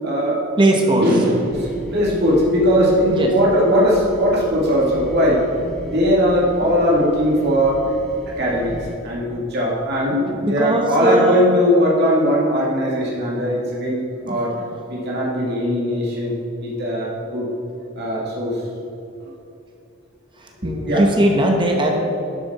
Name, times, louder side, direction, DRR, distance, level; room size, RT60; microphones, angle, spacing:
voice 1, 0.0-0.5 0.8-5.4 5.8-7.8 8.4-8.8 9.0-14.5 14.9-16.4 16.6-17.5 18.0-18.6 20.6-21.0, equal, 55° right, -5 dB, 2.2 m, -19 dB
voice 2, 0.6-1.0 3.1-3.3 6.6-6.7 10.4-11.4 14.2-14.4 20.6-22.0, right 1 dB, 25° right, 1 dB, 0.9 m, -18 dB
sound 1, 1.5-8.9, left 1 dB, ahead, 1.6 m, -37 dB
11.5 x 7.3 x 4.2 m, 2.8 s
head